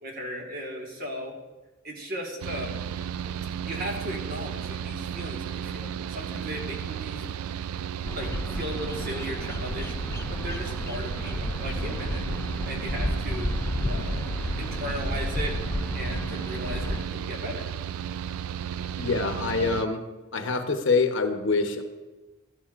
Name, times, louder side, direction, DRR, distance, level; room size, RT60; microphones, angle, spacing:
voice 1, 0.0-1.3 1.8-2.8 3.6-7.2 8.1-9.9 10.3-12.2 12.6-14.2 14.6-15.6 15.9-17.6, equal, 45° right, 0 dB, 1.6 m, -36 dB
Mechanical fan, 2.4-19.9, right 8 dB, 90° right, 0.3 m, -34 dB
Bird vocalization bird call bird song, 8.0-17.0, left 1 dB, 10° left, 0.3 m, -32 dB
voice 2, 19.0-20.0 20.3-21.8, left 4 dB, 60° left, 6 dB, 0.8 m, -25 dB
12.5 x 12.0 x 2.5 m, 1.2 s
head